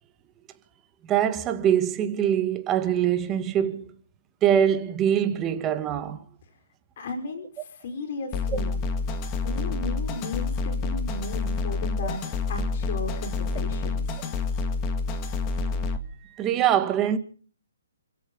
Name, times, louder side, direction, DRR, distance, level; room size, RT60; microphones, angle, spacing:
voice 1, 1.0-3.9 4.4-6.3 16.2-17.2, right 9 dB, 15° right, 2.0 m, -23 dB
voice 2, 7.0-8.8 9.3-14.2, left 3 dB, 40° left, 5.0 m, -35 dB
sound 1, 8.3-16.0, left 4 dB, 20° left, 2.2 m, -28 dB
29.5 x 16.5 x 5.4 m
hypercardioid pair, 160°, 0 cm